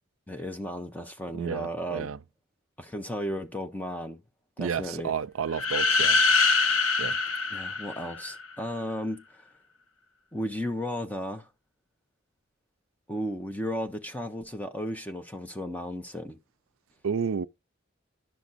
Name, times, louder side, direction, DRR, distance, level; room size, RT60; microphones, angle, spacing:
voice 1, 0.3-2.1 2.8-4.2 4.6-5.1 7.5-9.2 10.3-11.5 13.1-16.4, equal, 10° left, 0.8 m, -34 dB
voice 2, 1.3-2.2 4.6-6.2 7.0-7.2 17.0-17.5, right 6 dB, 80° right, 0.5 m, -31 dB
sound 1, 5.5-8.5, left 4 dB, 85° left, 0.9 m, -24 dB
10.5 x 6.1 x 4.0 m
head